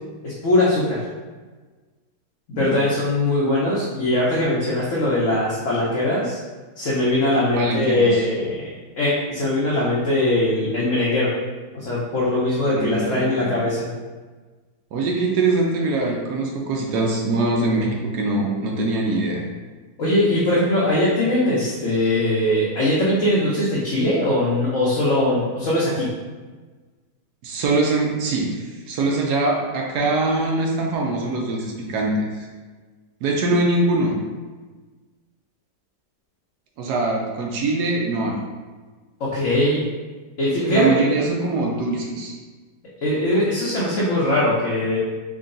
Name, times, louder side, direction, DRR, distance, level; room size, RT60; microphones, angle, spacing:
voice 1, 0.2-1.0 2.6-6.4 6.8-8.5 9.0-11.3 11.7-13.9 20.0-26.1 39.2-39.8 40.4-41.1 43.0-45.0, left 1 dB, 55° left, -7 dB, 0.9 m, -21 dB
voice 2, 7.5-8.2 12.6-13.5 14.9-19.4 27.4-32.5 33.2-34.2 36.8-38.4 40.7-42.3, right 2 dB, 75° right, 0 dB, 1.1 m, -23 dB
3.7 x 2.3 x 3.7 m, 1.3 s
omnidirectional pair, 1.8 m